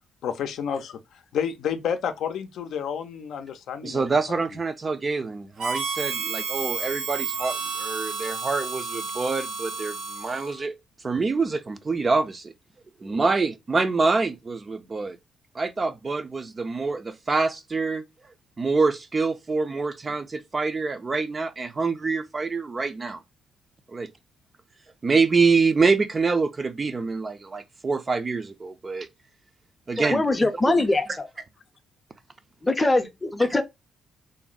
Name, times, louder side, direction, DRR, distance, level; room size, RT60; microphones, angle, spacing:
voice 1, 0.2-4.4, left 8 dB, 75° left, 0.5 m, -30 dB
voice 2, 3.8-10.7 11.0-12.5 13.0-15.2 15.5-18.0 18.6-23.2 23.9-24.1 25.0-29.1 29.9-30.8, right 4 dB, 30° right, 0.4 m, -26 dB
Harmonica, 5.6-10.6, right 5 dB, 90° right, 0.8 m, -31 dB
voice 3, 29.9-31.3 32.6-33.6, left 2 dB, 20° left, 0.6 m, -22 dB
2.6 x 2.0 x 3.8 m
cardioid pair, 90°, 0 cm